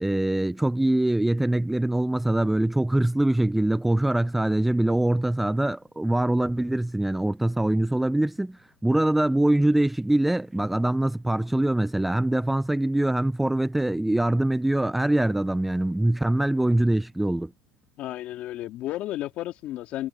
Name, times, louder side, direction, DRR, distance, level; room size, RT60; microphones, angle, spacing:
voice 1, 0.0-17.5, right 1 dB, 5° right, 0.3 m, -23 dB
voice 2, 18.0-20.1, left 14 dB, 45° left, 2.8 m, -32 dB
supercardioid pair, 130°, 3 cm